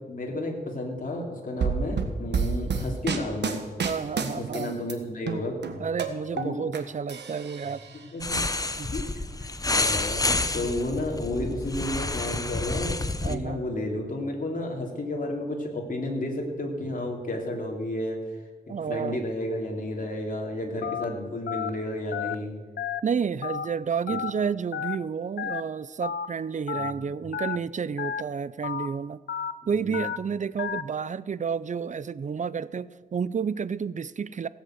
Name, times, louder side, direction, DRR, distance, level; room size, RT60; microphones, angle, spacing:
voice 1, 0.1-3.6 4.4-5.6 6.3-6.6 7.9-8.4 8.9-9.0 9.4-18.2 18.7-22.5 24.1-24.2 26.7-27.0 29.6-30.1, left 1 dB, 50° left, 0 dB, 3.2 m, -32 dB
sound 1, 1.6-4.9 5.3-6.8 7.1-8.0, right 5 dB, 90° right, 1.4 m, -29 dB
voice 2, 3.8-4.7 5.8-7.8 8.8-8.9 10.5-10.7 13.2-13.6 18.7-19.2 23.0-29.2 29.7-34.5, right 6 dB, 45° right, 17 dB, 0.5 m, -30 dB
sound 2, 8.2-13.3, left 2 dB, 20° left, 0.8 m, -29 dB
Telephone, 20.8-21.0 21.5-21.7 22.1-22.3 22.8-23.0 23.4-23.7 24.1-24.3 24.7-25.0 25.4-25.6 26.0-26.3 26.7-26.9 27.3-27.6 28.0-28.2 28.6-28.9 29.3-29.5 29.9-30.2 30.6-30.8, left 8 dB, 75° left, 0.6 m, -31 dB
16.5 x 8.3 x 7.8 m, 1.4 s
wide cardioid pair, 95°, 17 cm